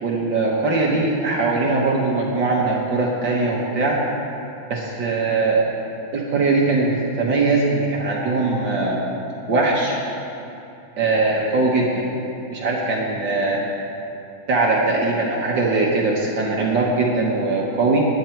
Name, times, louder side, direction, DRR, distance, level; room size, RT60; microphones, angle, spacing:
voice 1, 0.0-4.0 4.7-5.6 6.1-9.0 9.5-10.0 11.0-12.1 12.5-13.6 14.5-18.0, right 3 dB, 60° right, -2 dB, 1.9 m, -21 dB
19.5 x 9.3 x 4.5 m, 2.9 s
omnidirectional pair, 2.4 m